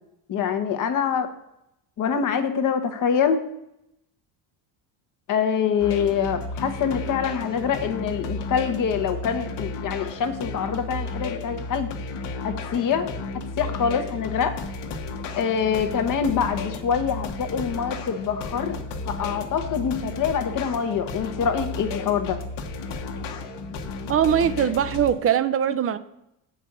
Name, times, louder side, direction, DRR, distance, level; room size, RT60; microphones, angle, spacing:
voice 1, 0.3-1.3 2.0-3.4 5.3-11.9 12.4-13.1 13.6-14.5 15.4-18.8 19.1-22.4, left 7 dB, 45° left, 7 dB, 1.1 m, -25 dB
sound 1, 5.8-25.1, left 3 dB, 65° left, 1.4 m, -33 dB
voice 2, 24.1-26.0, right 9 dB, 35° right, 14 dB, 0.4 m, -21 dB
7.6 x 5.4 x 6.6 m, 0.83 s
cardioid pair, 140°, 45 cm